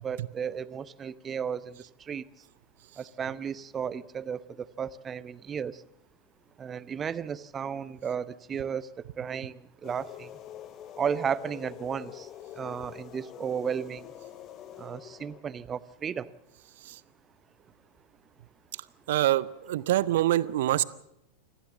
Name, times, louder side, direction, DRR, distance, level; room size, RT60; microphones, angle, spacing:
voice 1, 0.0-2.3 3.0-5.8 6.6-8.9 9.2-10.3 11.0-12.3 12.6-14.1 14.8-16.3, right 7 dB, 20° right, 18 dB, 0.8 m, -34 dB
sound 1, 9.8-15.4, left 11 dB, 35° left, 1.1 m, -45 dB
voice 2, 19.1-20.8, right 14 dB, 55° right, 19 dB, 0.8 m, -25 dB
25.5 x 15.5 x 7.4 m, 0.79 s
figure-of-eight pair, 90°, 0 cm